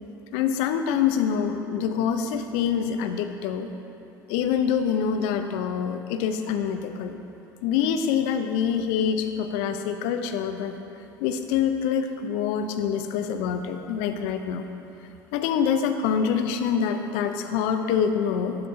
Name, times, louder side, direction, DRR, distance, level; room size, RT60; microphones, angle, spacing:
voice 1, 0.3-3.7 4.3-7.2 7.6-10.7 11.2-14.7 15.3-18.6, left 7 dB, 65° left, 8 dB, 0.4 m, -25 dB
7.1 x 6.6 x 2.6 m, 3.0 s
hypercardioid pair, 80°, 11 cm